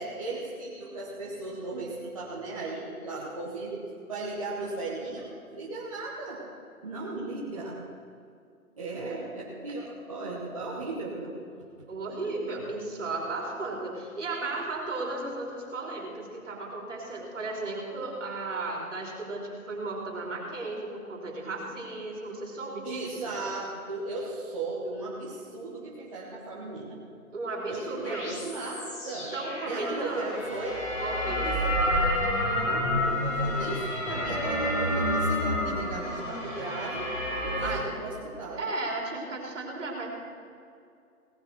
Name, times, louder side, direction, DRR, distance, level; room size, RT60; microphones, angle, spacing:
voice 1, 0.0-6.4 6.8-7.8 8.8-11.3 22.8-27.0 27.7-29.3 29.6-30.8 31.3-32.0 32.5-37.1 37.4-38.6, right 2 dB, 25° right, -6 dB, 1.3 m, -36 dB
voice 2, 11.9-23.4 27.3-28.3 29.3-30.3 31.0-31.5 32.6-33.0 37.6-37.8 38.6-40.1, right 2 dB, 55° right, 0 dB, 3.5 m, -35 dB
sound 1, 28.0-37.7, left 1 dB, 55° left, 4.2 m, -29 dB
17.5 x 8.2 x 5.9 m, 2.4 s
hypercardioid pair, 175°, 44 cm